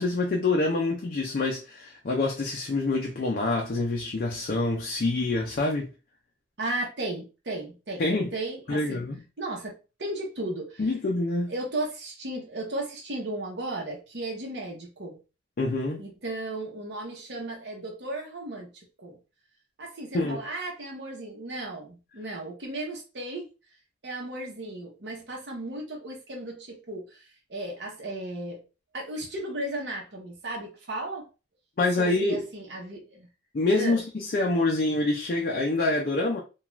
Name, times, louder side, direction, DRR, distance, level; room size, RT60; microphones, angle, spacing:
voice 1, 0.0-5.9 8.0-8.3 8.7-9.2 10.8-11.5 15.6-16.0 20.1-20.4 31.8-32.4 33.5-36.4, left 2 dB, 50° left, 0.4 m, -26 dB
voice 2, 6.6-8.0 8.3-9.0 9.4-9.7 10.0-10.9 11.5-15.2 16.0-18.7 19.0-19.2 19.8-23.5 24.0-27.2 27.5-28.6 28.9-31.3 32.0-33.3 33.8-34.0, right 2 dB, 70° right, 0.8 m, -35 dB
2.4 x 2.3 x 3.0 m
head